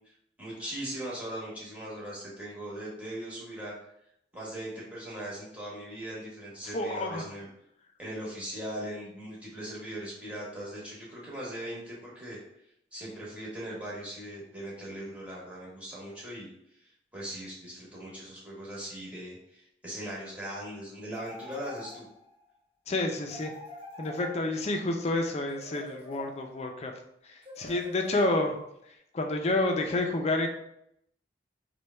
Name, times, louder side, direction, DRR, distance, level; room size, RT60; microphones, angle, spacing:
voice 1, 0.4-3.7 4.3-7.5 8.0-12.4 12.9-16.5 16.8-22.1, right 1 dB, 5° right, -6 dB, 1.1 m, -39 dB
voice 2, 6.6-7.2 22.9-23.5 24.0-26.9 27.6-28.6 29.1-30.5, left 2 dB, 35° left, 3 dB, 0.5 m, -29 dB
sound 1, 21.1-22.4 23.3-24.8 25.5-26.7 27.4-28.6, left 1 dB, 35° right, 1.0 m, -46 dB
3.2 x 2.2 x 4.2 m, 0.76 s
head